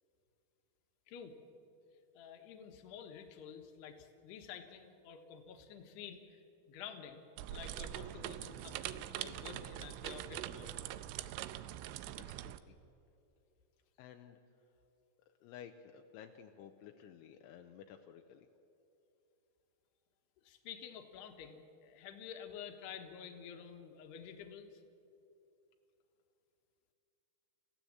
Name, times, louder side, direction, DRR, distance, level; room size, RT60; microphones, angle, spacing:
voice 1, 2.1-10.8 20.4-24.8, left 7 dB, 65° left, 5 dB, 3.2 m, -50 dB
sound 1, 7.4-12.6, right 13 dB, 80° right, 3.1 m, -43 dB
voice 2, 12.2-12.8 13.9-14.4 15.4-18.5, left 9 dB, 80° left, 5 dB, 3.1 m, -54 dB
29.0 x 16.0 x 7.8 m, 2.8 s
omnidirectional pair, 5.7 m